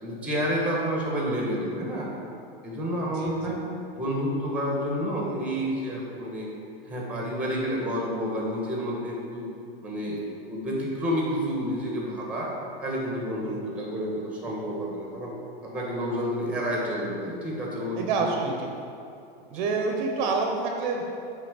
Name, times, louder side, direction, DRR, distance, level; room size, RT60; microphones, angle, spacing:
voice 1, 0.0-2.1 2.6-3.7 3.9-6.5 6.9-9.5 9.8-10.2 10.5-12.5 12.8-15.3 15.6-18.0 19.5-19.7, equal, 5° right, -3 dB, 1.5 m, -29 dB
voice 2, 3.1-3.6 13.4-13.7 17.9-18.7 19.5-21.0, right 4 dB, 50° right, 1 dB, 1.0 m, -28 dB
8.6 x 3.9 x 5.2 m, 2.7 s
supercardioid pair, 145°, 29 cm